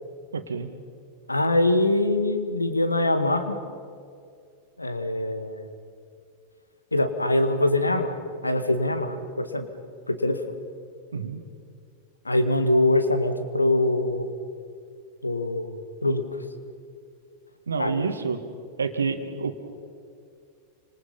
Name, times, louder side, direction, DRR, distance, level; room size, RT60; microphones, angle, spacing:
voice 1, 0.3-0.7 11.1-11.4 17.7-18.4 18.8-19.6, right 5 dB, 75° right, 8 dB, 2.1 m, -28 dB
voice 2, 1.3-3.6 4.8-5.6 6.9-8.2 8.4-9.7 10.1-10.4 12.3-14.3 15.2-15.8 16.0-16.4 17.8-18.0, left 1 dB, 80° left, 9 dB, 1.9 m, -23 dB
29.0 x 26.5 x 5.6 m, 2.3 s
figure-of-eight pair, 90°, 0 cm